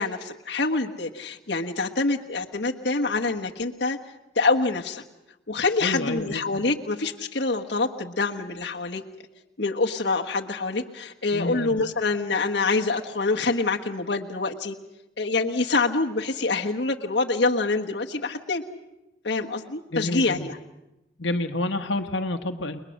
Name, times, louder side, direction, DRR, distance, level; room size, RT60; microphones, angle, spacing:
voice 1, 0.0-4.0 4.3-5.0 5.5-9.0 9.6-14.8 15.2-18.6 19.2-20.6, left 3 dB, 65° left, 1 dB, 1.4 m, -26 dB
voice 2, 5.8-6.4 11.3-11.7 19.9-20.5 21.2-22.8, left 2 dB, 85° left, 5 dB, 1.4 m, -29 dB
30.0 x 21.0 x 6.5 m, 0.94 s
head